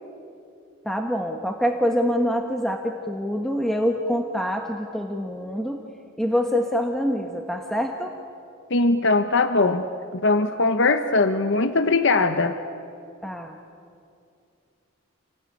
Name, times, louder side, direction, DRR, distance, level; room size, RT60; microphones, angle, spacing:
voice 1, 0.8-5.8 6.2-8.1 13.2-13.5, equal, ahead, 3 dB, 1.3 m, -25 dB
voice 2, 8.7-9.9 10.1-12.6, left 3 dB, 60° left, 9 dB, 1.0 m, -20 dB
29.0 x 18.0 x 9.8 m, 2.5 s
head